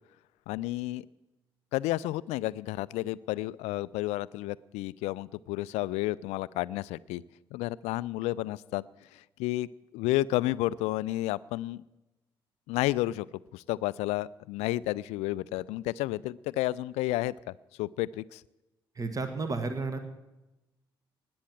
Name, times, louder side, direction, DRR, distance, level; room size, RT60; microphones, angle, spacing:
voice 1, 0.5-1.0 1.7-7.2 7.5-8.8 9.1-11.8 12.7-13.3 13.5-18.4, left 17 dB, 60° left, 21 dB, 0.4 m, -31 dB
voice 2, 18.9-20.0, right 3 dB, 30° right, 8 dB, 1.6 m, -32 dB
19.5 x 7.8 x 7.5 m, 1.0 s
figure-of-eight pair, 45°, 13 cm